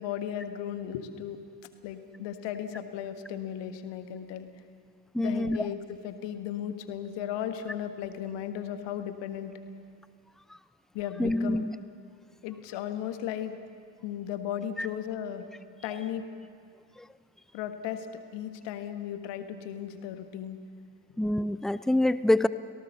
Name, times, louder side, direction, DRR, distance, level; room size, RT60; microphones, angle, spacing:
voice 1, 0.0-1.4 1.8-4.5 5.2-9.5 10.9-11.6 12.4-13.6 14.0-15.5 15.8-16.3 17.5-18.1 18.3-20.6, left 10 dB, 55° left, 8 dB, 1.7 m, -35 dB
voice 2, 5.1-5.6 11.2-11.7 21.2-22.5, left 1 dB, ahead, 15 dB, 0.5 m, -25 dB
24.5 x 18.0 x 6.9 m, 2.1 s
figure-of-eight pair, 50°, 50 cm